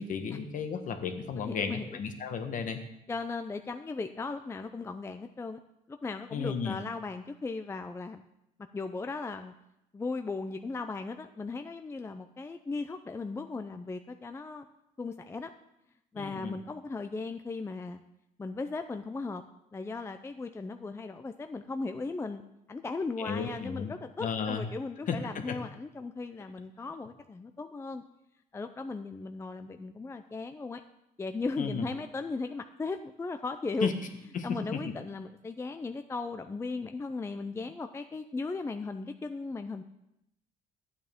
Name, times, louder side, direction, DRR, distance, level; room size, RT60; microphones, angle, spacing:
voice 1, 0.0-2.8 6.3-6.8 16.2-16.6 23.2-23.9 24.2-24.7 25.1-25.2 25.5-25.6 31.6-31.9 33.8-33.9 34.3-34.8, left 6 dB, 50° left, 7 dB, 1.2 m, -33 dB
voice 2, 1.4-2.0 3.1-5.6 5.9-8.2 8.7-9.5 9.9-14.7 15.0-15.5 16.1-18.0 18.4-19.4 19.7-22.4 22.7-28.0 28.5-30.8 31.2-33.9 34.4-39.8, left 3 dB, 15° left, 8 dB, 0.4 m, -37 dB
12.5 x 8.6 x 3.6 m, 0.85 s
cardioid pair, 110°, 17 cm